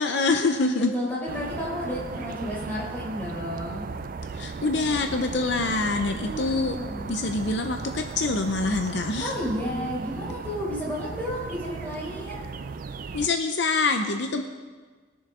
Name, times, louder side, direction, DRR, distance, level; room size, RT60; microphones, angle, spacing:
voice 1, 0.0-0.9 4.3-6.8 7.1-9.3 13.1-14.4, left 3 dB, 65° left, 5 dB, 0.7 m, -25 dB
voice 2, 0.5-3.9 6.2-7.1 9.2-12.4, equal, 10° left, -7 dB, 4.3 m, -32 dB
sound 1, 1.3-13.3, right 4 dB, 50° right, 0.4 m, -36 dB
20.5 x 7.0 x 3.8 m, 1.4 s
head